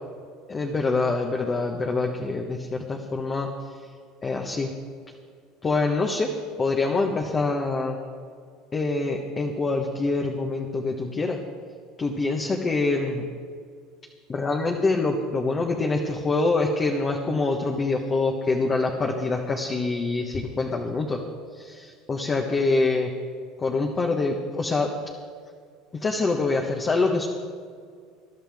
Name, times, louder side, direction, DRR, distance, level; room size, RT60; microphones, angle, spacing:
voice 1, 0.5-3.5 4.2-4.7 5.6-8.0 8.7-11.4 12.0-13.2 14.3-21.2 21.5-23.1 23.6-24.9 26.0-27.3, left 3 dB, 25° left, 1 dB, 1.4 m, -25 dB
22.0 x 11.5 x 3.6 m, 2.1 s
supercardioid pair, 110°, 0 cm